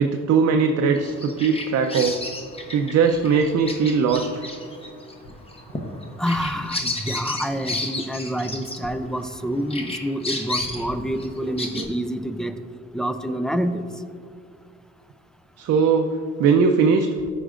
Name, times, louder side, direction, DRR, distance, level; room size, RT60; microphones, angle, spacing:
voice 1, 0.0-2.2 2.7-4.4 11.7-11.9 13.3-13.4 15.6-16.1 16.4-17.1, right 5 dB, 60° right, 4 dB, 0.5 m, -20 dB
Bird vocalization bird call bird song, 0.9-9.4 9.7-11.8, left 2 dB, 20° left, 1.0 m, -32 dB
voice 2, 6.2-12.6 12.9-13.8, equal, ahead, 9 dB, 0.4 m, -27 dB
13.0 x 5.1 x 2.5 m, 2.3 s
cardioid pair, 90°, 30 cm